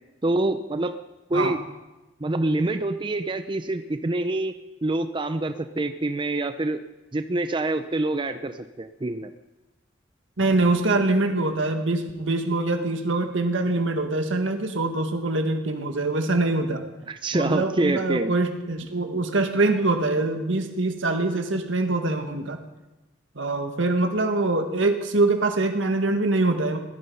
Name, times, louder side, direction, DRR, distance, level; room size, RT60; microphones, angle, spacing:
voice 1, 0.2-0.9 1.3-1.6 2.2-4.5 4.8-6.8 7.1-9.3 17.1-18.3, right 2 dB, 25° right, 9 dB, 0.5 m, -26 dB
voice 2, 10.4-16.8 17.3-22.6 23.4-26.8, right 2 dB, 80° right, 5 dB, 1.9 m, -24 dB
17.5 x 13.0 x 5.6 m, 1.1 s
head